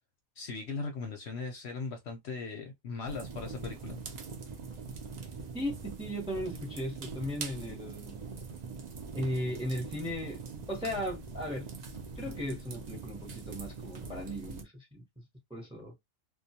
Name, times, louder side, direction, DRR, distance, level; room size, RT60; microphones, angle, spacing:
voice 1, 0.4-4.0, left 4 dB, 65° left, 0.8 m, -39 dB
sound 1, 3.1-14.6, right 4 dB, 85° right, 0.3 m, -43 dB
voice 2, 5.5-8.2 9.1-15.2 15.5-15.9, equal, 5° right, 0.6 m, -37 dB
2.3 x 2.2 x 2.7 m
omnidirectional pair, 1.4 m